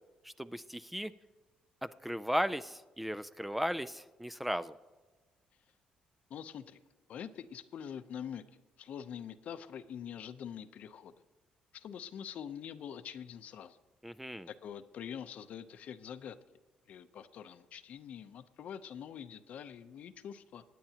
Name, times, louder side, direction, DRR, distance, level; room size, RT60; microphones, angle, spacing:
voice 1, 0.2-1.1 1.8-4.8 14.0-14.5, equal, 5° right, 13 dB, 0.3 m, -36 dB
voice 2, 6.3-6.8 7.1-8.4 8.8-11.1 11.7-13.8 14.5-16.4 16.9-20.6, left 8 dB, 65° left, 12 dB, 0.6 m, -45 dB
23.5 x 9.2 x 2.9 m, 1.3 s
cardioid pair, 115°, 3 cm